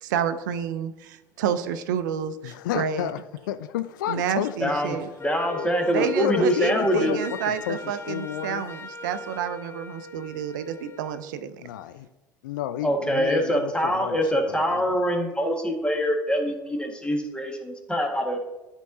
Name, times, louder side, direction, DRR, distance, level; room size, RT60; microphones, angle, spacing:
voice 1, 0.0-3.1 4.1-5.1 5.9-11.6, right 8 dB, 75° right, 0.5 m, -29 dB
voice 2, 2.4-4.8 5.5-8.6 11.6-12.1 12.4-15.0, left 11 dB, 75° left, 0.4 m, -32 dB
voice 3, 4.6-7.1 12.8-18.4, equal, 10° left, 1.6 m, -24 dB
Wind instrument woodwind instrument, 5.2-11.3, left 2 dB, 25° left, 0.8 m, -39 dB
12.5 x 4.5 x 2.7 m
hypercardioid pair, 65°, 10 cm